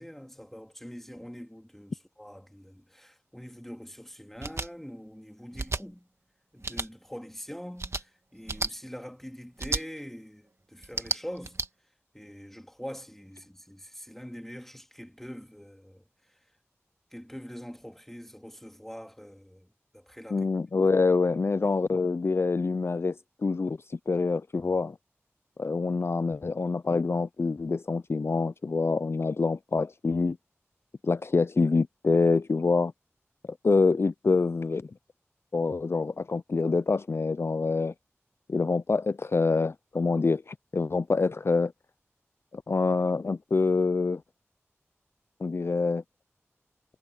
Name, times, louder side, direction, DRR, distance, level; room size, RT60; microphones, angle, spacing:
voice 1, 0.0-6.1 6.5-11.6 12.1-16.0 17.1-19.7 19.9-20.5, equal, 5° left, 2.6 m, -44 dB
sound 1, 4.4-4.7 5.5-5.8 6.6-6.9 7.8-8.0 8.5-8.7 9.6-9.8 10.8-11.7, right 3 dB, 65° right, 1.7 m, -31 dB
voice 2, 20.3-25.0 25.6-30.4 31.0-32.9 33.6-34.9 35.5-37.9 38.5-41.7 42.5-44.2 45.4-46.0, left 4 dB, 55° left, 0.4 m, -26 dB
wide cardioid pair, 40°, 5 cm